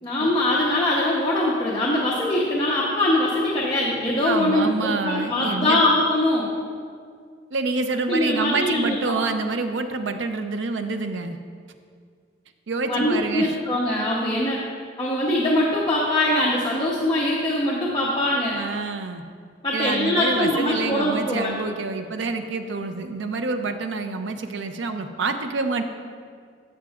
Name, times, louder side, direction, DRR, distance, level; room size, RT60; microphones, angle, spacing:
voice 1, 0.0-6.5 8.1-9.0 12.9-14.6 15.0-18.6 19.6-21.5, left 1 dB, 25° left, -6 dB, 0.8 m, -22 dB
voice 2, 4.2-5.8 7.5-11.4 12.7-13.5 18.6-19.2 19.7-25.8, right 3 dB, 85° right, 7 dB, 0.5 m, -27 dB
13.5 x 6.1 x 2.4 m, 2.1 s
head